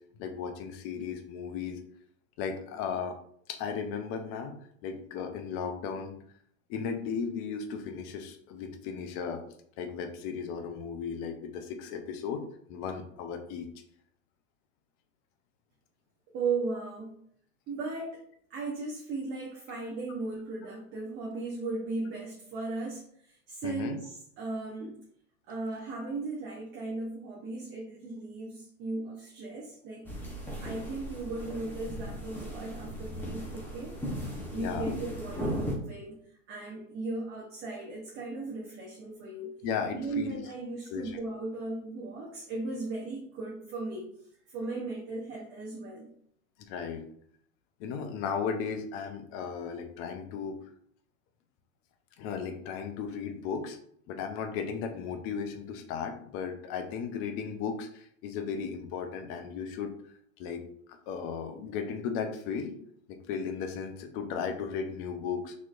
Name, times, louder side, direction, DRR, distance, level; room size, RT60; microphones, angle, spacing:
voice 1, 0.2-1.8 2.4-3.2 3.5-4.5 4.8-6.1 6.7-9.4 9.8-12.4 12.7-13.7 23.6-24.0 34.5-34.9 39.6-40.4 40.9-41.2 46.6-47.0 47.8-50.6 52.2-53.8 54.1-59.9 60.4-60.6 60.9-62.7 63.3-65.6, left 6 dB, 35° left, 6 dB, 0.5 m, -35 dB
voice 2, 16.3-17.1 17.7-18.2 18.5-25.0 25.5-30.1 30.5-34.0 34.5-39.6 39.9-44.1 44.5-46.1, right 3 dB, 30° right, -3 dB, 0.8 m, -37 dB
sound 1, 30.0-35.7, equal, 5° left, 0.8 m, -37 dB
4.0 x 3.0 x 2.4 m, 0.65 s
hypercardioid pair, 110°, 40 cm